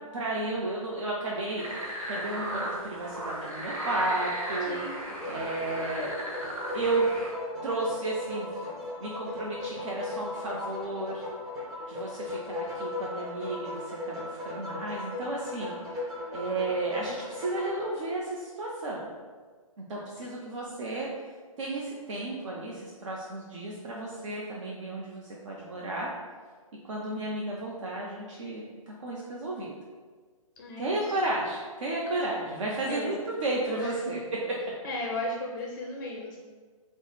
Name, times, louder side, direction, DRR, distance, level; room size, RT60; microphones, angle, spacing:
voice 1, 0.1-1.6 2.1-4.8 5.2-6.1 6.7-7.1 7.6-8.6 9.0-11.2 11.9-15.7 16.3-19.1 19.8-21.1 21.6-26.1 26.8-29.7 30.8-34.2, right 2 dB, 55° right, -3 dB, 0.6 m, -33 dB
sound 1, 1.6-7.3, right 1 dB, 70° right, 1.3 m, -36 dB
voice 2, 4.7-5.6 30.6-31.1 32.9-33.2 33.8-34.0 34.8-36.4, left 2 dB, 35° left, -1 dB, 0.4 m, -36 dB
sound 2, 5.0-17.9, left 2 dB, 15° right, 0.6 m, -37 dB
3.5 x 2.0 x 4.1 m, 1.5 s
figure-of-eight pair, 130°, 18 cm